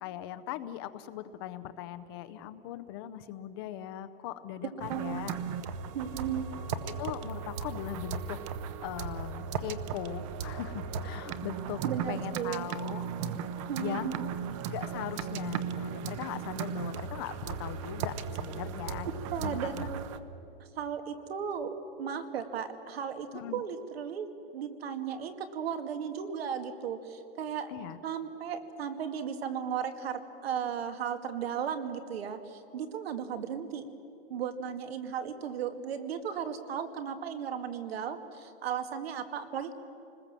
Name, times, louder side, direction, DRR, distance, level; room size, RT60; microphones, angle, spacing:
voice 1, 0.0-5.3 7.0-8.4 8.8-11.8 12.1-13.0 13.8-14.2 14.7-19.1 19.4-19.9 23.3-23.6 27.7-28.0, left 12 dB, 25° left, 12 dB, 0.5 m, -40 dB
sound 1, 4.8-20.2, right 6 dB, 30° right, 0.7 m, -36 dB
voice 2, 4.9-5.3 5.9-6.6 11.8-12.7 13.7-14.3 19.3-20.0 20.8-27.7 28.0-33.9 34.3-39.7, right 8 dB, 80° right, 7 dB, 2.2 m, -35 dB
27.5 x 20.5 x 7.4 m, 2.9 s
supercardioid pair, 175°, 30 cm